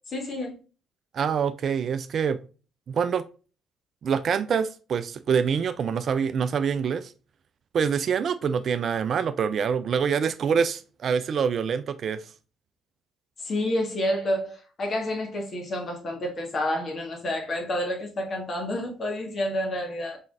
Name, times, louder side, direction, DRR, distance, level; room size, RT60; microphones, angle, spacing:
voice 1, 0.1-0.6 13.4-20.2, left 1 dB, 45° left, 1.5 m, -29 dB
voice 2, 1.1-2.4 2.9-3.2 4.0-7.1 7.7-12.2, right 6 dB, 50° right, 0.4 m, -25 dB
4.4 x 3.7 x 2.5 m
hypercardioid pair, 50°, 0 cm